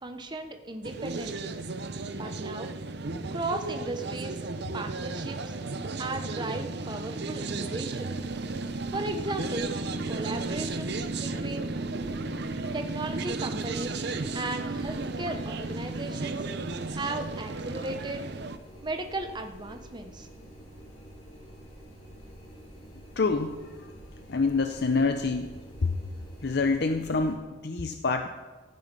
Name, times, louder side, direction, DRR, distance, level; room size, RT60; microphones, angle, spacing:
voice 1, 0.0-1.6 2.2-2.8 3.3-4.4 4.7-5.5 6.0-8.2 8.9-9.7 10.1-11.7 12.7-14.1 14.3-16.5 16.9-18.3 18.8-20.3, right 2 dB, 20° right, 6 dB, 0.8 m, -36 dB
sound 1, 0.8-18.6, right 3 dB, 55° right, 0.7 m, -34 dB
sound 2, 8.1-27.3, right 1 dB, 35° left, 3.6 m, -48 dB
voice 2, 23.2-23.5 24.3-25.5 25.8-26.0 26.4-28.3, left 4 dB, 50° left, 7 dB, 0.6 m, -26 dB
15.0 x 9.3 x 5.3 m, 1.3 s
head